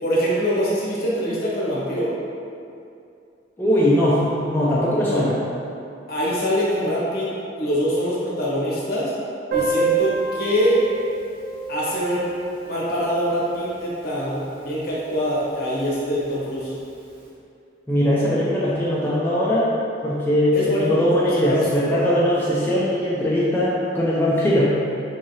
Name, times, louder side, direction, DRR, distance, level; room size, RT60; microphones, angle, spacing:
voice 1, 0.0-2.1 5.1-5.2 6.1-7.3 7.6-9.1 9.5-10.8 11.7-12.3 12.6-16.7 20.5-21.0 21.3-21.9, equal, 55° left, -6 dB, 0.9 m, -24 dB
voice 2, 3.6-5.4 17.9-19.7 20.0-24.7, left 1 dB, 10° left, -8 dB, 0.4 m, -20 dB
Piano, 9.5-14.9 15.1-15.2 15.4-15.6 15.9-16.0 16.8-16.9, right 5 dB, 55° right, 0.7 m, -28 dB
3.6 x 3.1 x 2.7 m, 2.5 s
head